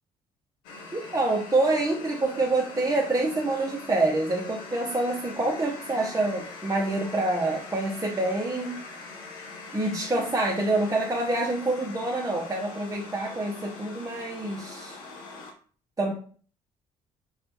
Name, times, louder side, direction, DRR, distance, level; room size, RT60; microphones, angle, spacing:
sound 1, 0.6-15.5, left 3 dB, 75° left, 0.9 m, -42 dB
voice 1, 0.9-8.8 9.7-15.0 16.0-16.1, right 2 dB, 20° right, -1 dB, 0.9 m, -26 dB
5.3 x 3.1 x 3.0 m, 0.44 s
hypercardioid pair, 50°, 17 cm